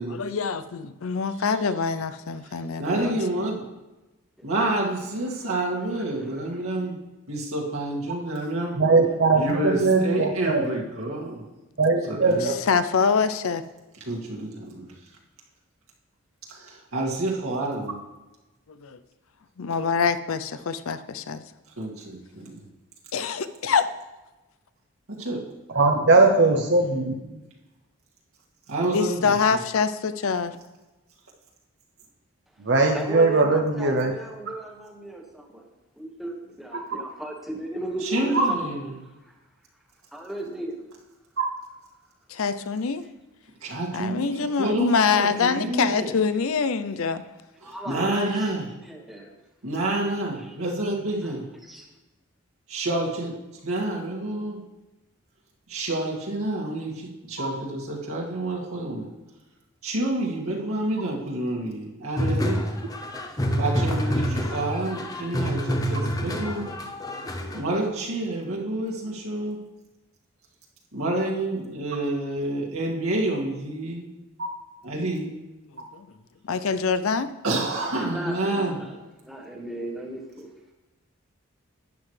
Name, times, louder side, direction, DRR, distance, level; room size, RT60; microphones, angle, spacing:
voice 1, 0.1-3.2 12.4-13.6 18.8-19.0 19.6-21.4 23.1-23.9 28.9-30.6 42.3-43.0 43.9-47.2 75.9-76.1 76.4-77.3, left 5 dB, 75° left, 12 dB, 0.5 m, -25 dB
voice 2, 2.8-3.7 4.4-7.0 7.3-8.8 9.3-11.4 12.1-12.5 14.1-14.9 16.5-18.0 21.8-22.6 25.1-25.4 26.5-26.6 28.7-29.3 38.0-39.0 43.6-46.1 47.6-48.7 49.6-51.4 52.7-53.3 53.6-54.6 55.7-59.1 59.8-62.6 63.6-66.7 67.5-69.6 70.9-74.1 74.8-75.3 77.4-78.8, right 2 dB, 80° right, -3 dB, 2.2 m, -28 dB
voice 3, 8.8-10.6 11.8-12.5 25.7-27.4 32.6-34.1 36.7-36.8 38.3-38.4 41.4-41.5 57.4-57.5, right 3 dB, 55° right, 3 dB, 0.7 m, -20 dB
voice 4, 32.9-35.7 36.0-38.7 39.3-39.4 40.1-40.7 47.6-48.5 48.8-49.3 50.5-50.6 51.2-51.3 51.6-51.8 77.9-79.0 79.2-80.5, right 1 dB, ahead, 0 dB, 1.2 m, -35 dB
sound 1, 62.2-67.6, equal, 15° left, 0.7 m, -27 dB
12.0 x 9.6 x 3.3 m, 1.1 s
head